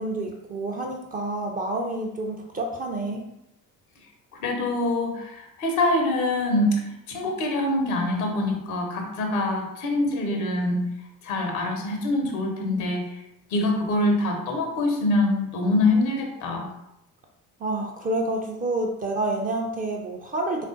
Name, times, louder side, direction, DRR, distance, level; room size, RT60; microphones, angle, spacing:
voice 1, 0.0-3.3 17.6-20.6, right 2 dB, 20° right, 1 dB, 0.4 m, -28 dB
voice 2, 4.3-10.8 11.2-13.0 13.5-16.7, left 2 dB, 70° left, 2 dB, 0.8 m, -24 dB
3.5 x 2.4 x 2.5 m, 0.83 s
figure-of-eight pair, 45°, 45 cm